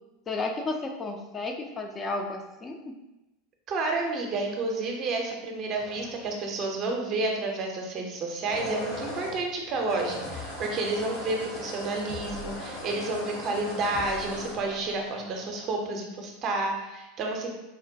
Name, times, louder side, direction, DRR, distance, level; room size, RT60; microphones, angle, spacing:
voice 1, 0.3-3.0, left 3 dB, 25° left, 2 dB, 0.4 m, -33 dB
voice 2, 3.7-17.5, right 2 dB, 40° right, 2 dB, 0.6 m, -30 dB
sound 1, 5.7-6.7 8.3-15.7, equal, 75° left, 1.2 m, -39 dB
sound 2, 10.2-10.5 12.1-12.6 13.9-15.1, left 4 dB, 50° left, 0.9 m, -43 dB
4.0 x 2.1 x 2.6 m, 0.97 s
figure-of-eight pair, 85°, 0 cm